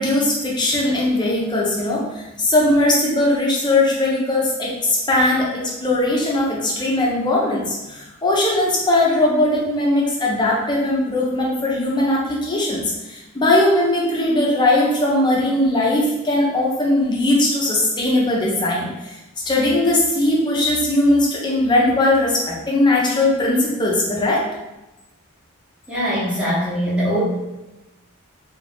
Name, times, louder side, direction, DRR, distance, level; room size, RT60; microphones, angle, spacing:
voice 1, 0.0-19.1 19.4-24.4, left 1 dB, 20° left, -4 dB, 0.6 m, -19 dB
voice 2, 25.9-27.2, equal, 5° right, -8 dB, 0.9 m, -22 dB
2.4 x 2.4 x 3.4 m, 1.0 s
head